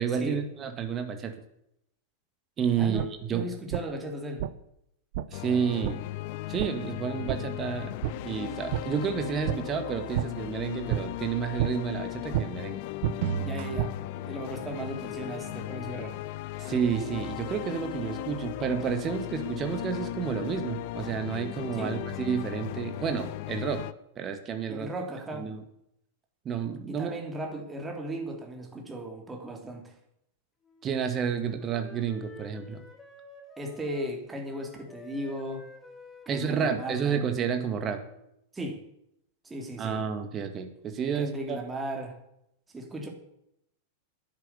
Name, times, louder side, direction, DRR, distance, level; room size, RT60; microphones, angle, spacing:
voice 1, 0.0-1.3 2.6-3.0 3.3-3.5 5.3-6.0 6.5-8.0 8.2-12.8 16.6-23.8 24.2-24.9 25.3-25.6 26.4-27.2 30.8-32.8 36.3-38.0 39.8-41.6, right 7 dB, 30° right, 6 dB, 2.0 m, -30 dB
voice 2, 2.8-4.5 13.4-16.2 21.8-22.0 24.7-25.5 26.9-29.9 33.6-35.7 36.3-37.3 38.5-38.8 39.4-40.0 41.1-42.2 42.7-43.1, right 1 dB, 10° right, 2 dB, 3.5 m, -36 dB
sound 1, 3.0-3.1 3.7-3.8 4.4-4.5 5.1-5.3 5.8-5.9 6.6-6.7 7.3-7.4 8.0-8.1 8.7-8.8 9.5-9.6 10.1-10.3 10.9-11.0 11.6-11.7 12.3-12.5 13.0-13.9, right 12 dB, 50° right, 0.8 m, -29 dB
sound 2, 5.3-23.9, left 16 dB, 50° left, 0.6 m, -37 dB
Wind instrument woodwind instrument, 30.6-34.2 34.4-38.3, left 2 dB, 15° left, 2.9 m, -51 dB
11.0 x 10.5 x 8.4 m, 0.77 s
figure-of-eight pair, 90°, 0 cm